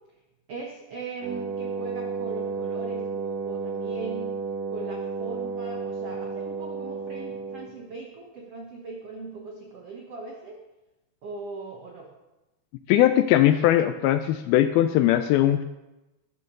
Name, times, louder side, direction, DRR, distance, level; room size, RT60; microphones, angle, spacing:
voice 1, 0.5-4.3 4.7-10.6 11.2-12.1, right 3 dB, 90° right, 0 dB, 1.3 m, -39 dB
Wind instrument woodwind instrument, 1.2-7.8, right 4 dB, 60° right, 3.0 m, -32 dB
voice 2, 12.9-15.7, left 12 dB, 85° left, 10 dB, 2.2 m, -20 dB
12.5 x 6.3 x 6.6 m, 1.0 s
omnidirectional pair, 4.7 m